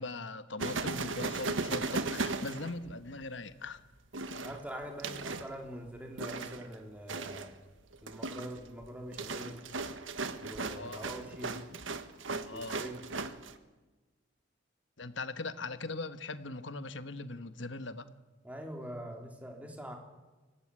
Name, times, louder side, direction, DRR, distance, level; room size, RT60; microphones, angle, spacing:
voice 1, 0.0-3.8 10.7-11.1 12.5-12.8 15.0-18.1, left 2 dB, 70° left, 12 dB, 1.4 m, -40 dB
sound 1, 0.6-3.2 4.1-5.5 6.2-6.7 7.1-7.5 7.9-13.5, right 3 dB, 85° right, 1.5 m, -37 dB
voice 2, 4.3-7.6 8.0-9.6 10.4-11.6 12.5-13.0 18.4-19.9, equal, 10° right, 2 dB, 3.4 m, -44 dB
24.5 x 17.5 x 9.8 m, 1.2 s
head